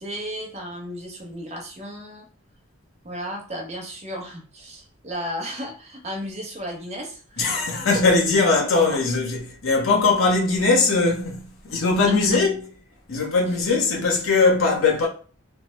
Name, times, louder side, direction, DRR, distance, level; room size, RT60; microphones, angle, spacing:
voice 1, 0.0-2.3 3.0-7.6 7.9-8.0 8.6-9.0 12.0-12.4, equal, 35° right, 0.8 m, -34 dB
voice 2, 7.4-11.4 11.7-12.6 13.1-15.1, left 3 dB, 85° left, 1.0 m, -20 dB
3.3 x 2.1 x 3.1 m
head